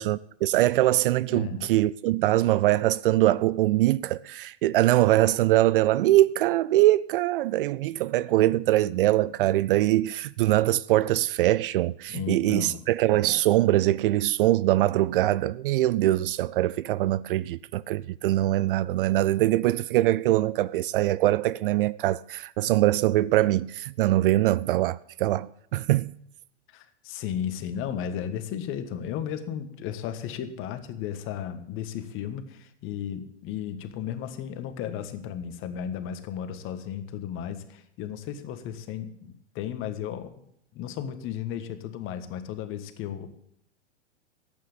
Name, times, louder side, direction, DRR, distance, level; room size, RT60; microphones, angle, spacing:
voice 1, 0.0-26.1, right 15 dB, 50° right, 0.4 m, -23 dB
voice 2, 1.3-1.7 12.1-12.8 26.7-40.3 40.7-43.3, left 9 dB, 35° left, 1.5 m, -34 dB
11.0 x 8.7 x 8.7 m
hypercardioid pair, 105°, 35 cm